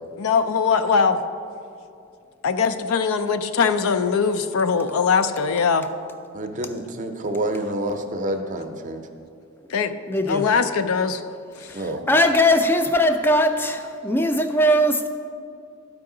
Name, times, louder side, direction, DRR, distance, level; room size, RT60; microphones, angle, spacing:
voice 1, 0.2-1.2 2.4-5.9 9.7-9.9 10.3-11.2, left 5 dB, 85° left, 10 dB, 0.4 m, -21 dB
voice 2, 6.3-9.0 11.7-12.0, right 1 dB, 35° right, 6 dB, 0.5 m, -28 dB
voice 3, 10.1-10.4 11.8-15.1, left 1 dB, 10° left, 7 dB, 0.4 m, -20 dB
12.0 x 4.8 x 3.8 m, 2.5 s
head